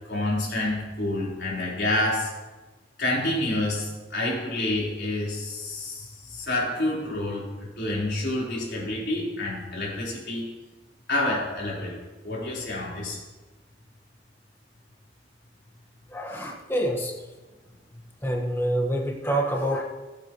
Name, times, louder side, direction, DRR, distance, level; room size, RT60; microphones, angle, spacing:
voice 1, 0.0-2.3 3.0-10.5 11.1-12.0 12.2-13.2, left 1 dB, 75° left, -5 dB, 4.3 m, -28 dB
voice 2, 16.1-17.1 18.2-19.8, right 1 dB, 15° left, 0 dB, 1.5 m, -26 dB
19.5 x 8.4 x 3.1 m, 1.2 s
head